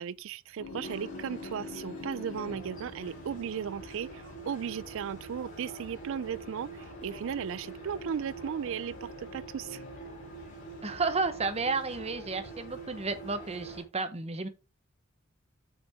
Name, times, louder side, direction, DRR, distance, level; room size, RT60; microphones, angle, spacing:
voice 1, 0.0-9.8, right 7 dB, 65° right, 0.4 m, -36 dB
sound 1, 0.6-13.8, right 1 dB, 85° left, 2.3 m, -44 dB
sound 2, 0.8-13.8, left 2 dB, 40° left, 3.2 m, -52 dB
voice 2, 10.8-14.5, right 3 dB, 30° right, 0.9 m, -32 dB
6.4 x 6.0 x 3.5 m
head